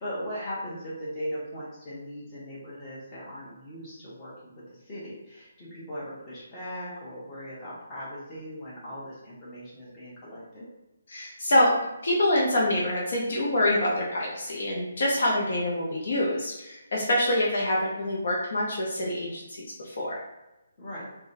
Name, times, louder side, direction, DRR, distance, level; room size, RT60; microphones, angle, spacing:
voice 1, 0.0-10.7 20.8-21.1, equal, 25° left, -8 dB, 1.2 m, -39 dB
voice 2, 11.1-11.7 12.0-20.2, left 1 dB, 65° left, -4 dB, 0.7 m, -26 dB
3.6 x 2.2 x 2.7 m, 0.96 s
hypercardioid pair, 155°, 0 cm